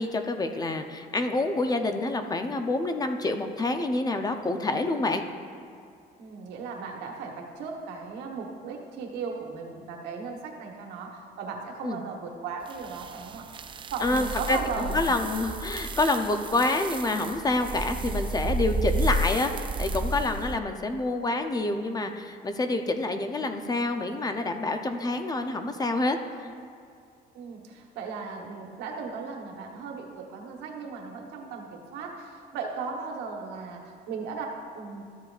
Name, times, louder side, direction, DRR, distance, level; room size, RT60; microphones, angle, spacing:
voice 1, 0.0-5.2 11.8-12.0 14.0-14.6 14.9-19.5 19.8-26.2 26.4-26.5, left 2 dB, 20° left, 6 dB, 0.6 m, -27 dB
voice 2, 6.2-15.1 27.3-35.0, right 5 dB, 90° right, 1 dB, 1.2 m, -37 dB
sound 1, 12.7-20.6, right 2 dB, 30° right, 0.4 m, -32 dB
13.0 x 7.6 x 2.4 m, 2.4 s
cardioid pair, 110°, 17 cm